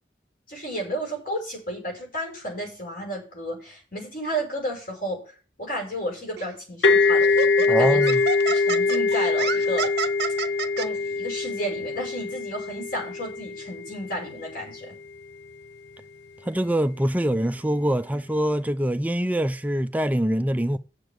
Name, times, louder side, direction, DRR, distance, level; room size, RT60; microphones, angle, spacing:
voice 1, 0.5-5.2 5.6-8.0 8.5-9.9 10.8-14.9, equal, 55° left, 5.7 m, -32 dB
Laughter, 6.4-6.6 7.2-10.9, right 6 dB, 65° right, 0.6 m, -30 dB
sound 1, 6.8-14.4, left 4 dB, 75° left, 1.1 m, -23 dB
voice 2, 7.7-8.2 16.4-20.8, right 1 dB, 10° right, 0.4 m, -24 dB
7.4 x 7.0 x 7.9 m
head